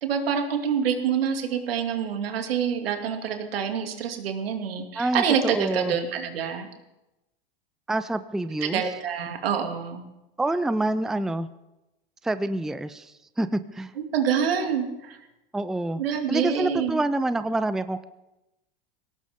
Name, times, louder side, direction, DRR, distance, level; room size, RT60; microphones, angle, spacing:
voice 1, 0.0-6.7 8.6-10.0 14.0-15.2 16.0-17.0, right 7 dB, 85° right, 4 dB, 2.6 m, -26 dB
voice 2, 5.0-5.9 7.9-8.8 10.4-11.5 12.2-13.9 15.5-16.0 16.3-18.0, right 2 dB, ahead, 12 dB, 0.5 m, -27 dB
21.5 x 18.0 x 3.7 m, 0.96 s
hypercardioid pair, 105°, 29 cm